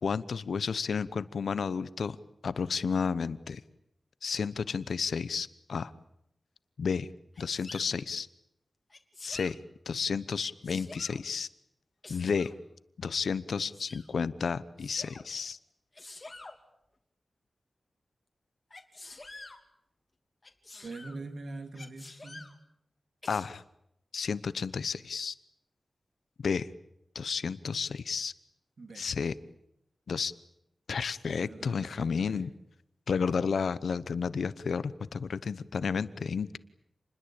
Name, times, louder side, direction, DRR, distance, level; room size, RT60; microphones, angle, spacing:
voice 1, 0.0-2.2 2.4-3.6 4.2-5.9 6.8-7.1 7.4-8.3 9.2-9.6 9.9-11.5 12.1-12.5 13.0-15.6 23.3-23.6 24.1-25.3 26.4-26.7 27.1-28.3 29.0-29.3 30.1-30.3 30.9-32.5 33.1-36.6, left 5 dB, 90° left, 16 dB, 0.9 m, -31 dB
Sneeze, 7.3-7.9 8.9-9.5 10.4-11.2 12.0-12.6 13.5-14.1 14.8-15.2 15.9-16.6 18.7-19.6 20.4-21.2 21.7-22.5 23.2-23.5, left 2 dB, 30° left, 3.0 m, -48 dB
voice 2, 20.8-22.4 28.8-29.1 31.2-32.4, right 3 dB, 70° right, 7 dB, 3.2 m, -43 dB
28.5 x 21.0 x 8.9 m, 0.83 s
wide cardioid pair, 80°, 0 cm